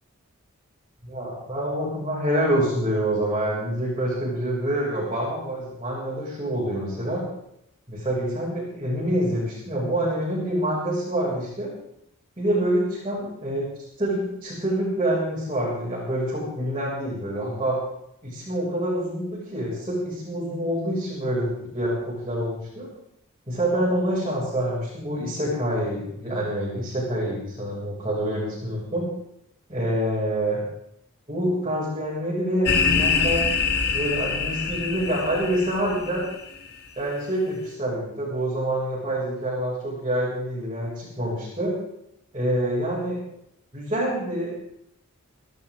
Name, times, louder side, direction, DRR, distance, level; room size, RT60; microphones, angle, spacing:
voice 1, 1.0-7.2 7.9-11.7 12.4-13.7 14.0-17.8 18.2-22.9 23.5-29.1 29.7-30.6 31.3-33.5 33.9-36.2 37.0-41.7 42.3-43.2 43.7-44.6, right 1 dB, 25° right, -8 dB, 6.7 m, -26 dB
sound 1, 32.7-36.5, left 5 dB, 50° left, 2.0 m, -25 dB
28.0 x 12.5 x 3.9 m, 0.76 s
head